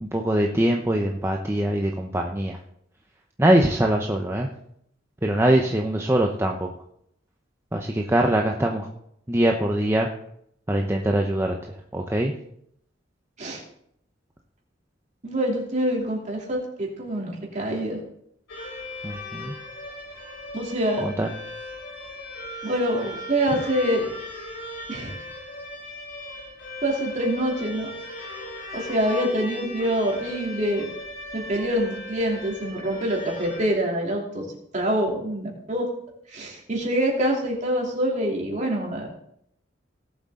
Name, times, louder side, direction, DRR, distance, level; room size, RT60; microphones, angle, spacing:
voice 1, 0.0-2.6 3.4-4.5 5.2-6.7 7.7-8.9 9.3-10.1 10.7-11.6 11.9-12.3 19.0-19.5 21.0-21.3, right 1 dB, 15° right, 1 dB, 0.7 m, -22 dB
voice 2, 15.2-18.0 20.5-21.0 22.6-24.1 24.9-25.2 26.8-27.9 28.7-30.9 31.3-34.5 34.7-35.9 36.3-39.1, right 1 dB, 40° right, -1 dB, 3.0 m, -25 dB
sound 1, 18.5-33.7, left 1 dB, 80° left, 3.9 m, -38 dB
18.0 x 7.7 x 3.7 m, 0.72 s
head